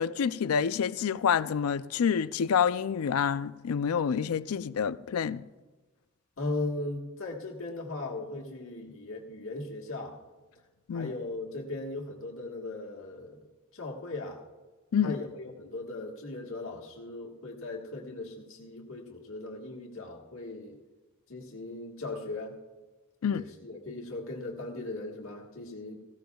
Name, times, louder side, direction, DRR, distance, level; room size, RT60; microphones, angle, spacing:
voice 1, 0.0-5.4 10.9-11.1 14.9-15.2 23.2-23.4, left 7 dB, 85° left, 0.4 m, -28 dB
voice 2, 6.4-10.2 10.9-13.4 13.7-14.4 15.0-20.7 21.3-22.5 23.3-26.0, left 2 dB, 70° left, 1.6 m, -38 dB
18.5 x 15.5 x 2.3 m
head